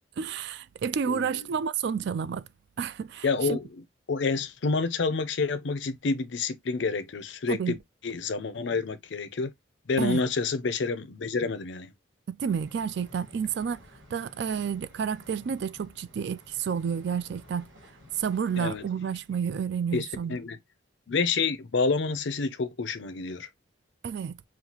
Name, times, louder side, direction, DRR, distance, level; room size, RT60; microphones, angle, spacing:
voice 1, 0.2-2.5 2.8-3.6 7.5-7.7 10.0-10.2 12.3-13.8 14.1-17.7 18.2-20.4 24.0-24.4, right 7 dB, 55° right, 0.3 m, -30 dB
voice 2, 1.1-1.5 3.2-3.7 4.1-7.8 8.0-9.5 9.9-11.9 18.6-18.8 19.9-20.6 21.1-23.5, left 4 dB, 65° left, 0.5 m, -28 dB
sound 1, 12.4-19.3, left 1 dB, 75° right, 2.9 m, -53 dB
5.6 x 2.3 x 2.9 m
head